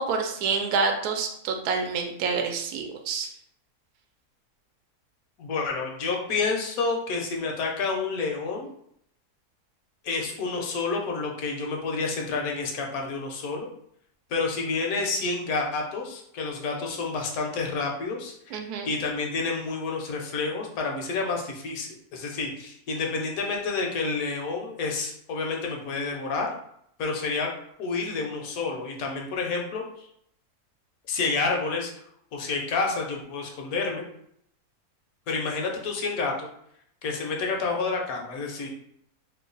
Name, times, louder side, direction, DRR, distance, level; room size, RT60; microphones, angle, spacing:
voice 1, 0.0-3.3 18.5-18.9, right 4 dB, 80° right, 4 dB, 1.1 m, -27 dB
voice 2, 5.4-8.7 10.0-13.7 14.3-18.6 18.8-26.5 27.0-27.5 27.8-30.1 31.1-31.9 32.3-34.0 35.3-36.5 37.0-38.7, left 4 dB, 70° left, 1 dB, 1.1 m, -29 dB
3.0 x 2.2 x 3.8 m, 0.70 s
omnidirectional pair, 1.6 m